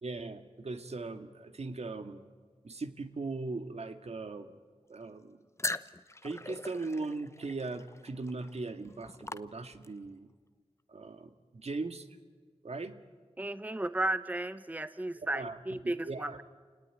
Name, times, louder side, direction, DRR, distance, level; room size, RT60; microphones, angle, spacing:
voice 1, 0.0-2.3 2.6-4.5 4.9-5.4 6.2-10.3 10.9-12.1 12.6-13.0 15.3-15.6 15.8-16.4, right 3 dB, 70° right, 7 dB, 1.9 m, -39 dB
sound 1, 5.6-10.1, left 2 dB, 25° left, 0.9 m, -41 dB
voice 2, 13.4-16.4, right 1 dB, 15° right, 13 dB, 0.8 m, -34 dB
29.0 x 19.0 x 9.8 m, 1.5 s
wide cardioid pair, 70°, 11 cm